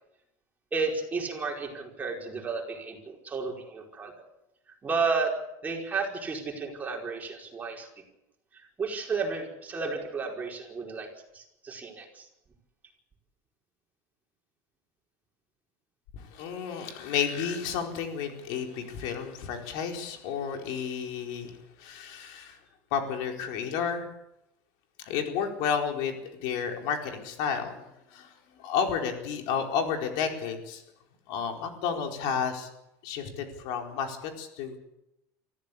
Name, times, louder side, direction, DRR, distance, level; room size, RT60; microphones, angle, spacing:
voice 1, 0.7-4.1 4.8-5.3 5.6-7.9 8.5-11.1 11.3-12.3, right 4 dB, 20° right, 0 dB, 4.9 m, -32 dB
voice 2, 16.1-22.6 22.9-24.1 25.0-30.8 31.3-32.7 33.0-34.8, left 7 dB, 70° left, 4 dB, 4.4 m, -32 dB
24.5 x 15.0 x 8.5 m, 0.87 s
cardioid pair, 135°, 8 cm